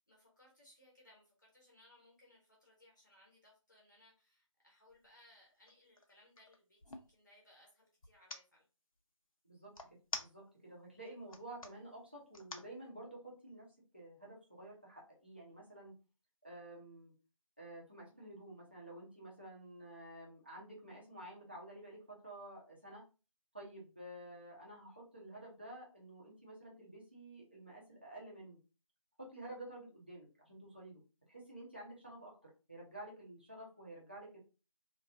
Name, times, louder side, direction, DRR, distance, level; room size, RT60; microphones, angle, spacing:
voice 1, 0.1-8.6, left 1 dB, 35° left, -3 dB, 0.7 m, -65 dB
sound 1, 4.9-5.1 5.5-7.1 8.0-8.4 9.7-10.7 11.2-11.7 12.3-12.7, left 2 dB, 85° left, 0.5 m, -46 dB
voice 2, 10.2-13.7 13.9-16.0 16.4-17.1 17.6-23.0 23.5-28.6 29.2-31.0 31.3-34.4, right 1 dB, 20° right, -3 dB, 0.5 m, -51 dB
2.3 x 2.3 x 2.3 m, 0.32 s
figure-of-eight pair, 170°, 17 cm